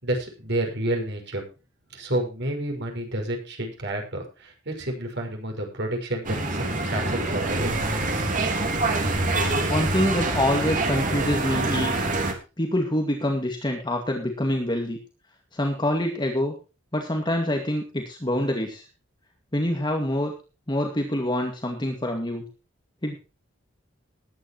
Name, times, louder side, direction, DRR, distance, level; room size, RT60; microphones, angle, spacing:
voice 1, 0.0-1.4 1.9-7.7, right 1 dB, 60° right, 3 dB, 6.0 m, -30 dB
sound 1, 6.2-12.3, right 2 dB, 40° right, 3.3 m, -25 dB
voice 2, 9.7-12.1 12.6-15.0 15.5-16.5 16.9-18.9 19.5-20.3 20.7-22.4 23.0-23.2, left 1 dB, 25° left, 2 dB, 2.1 m, -26 dB
19.5 x 10.0 x 3.1 m, 0.32 s
head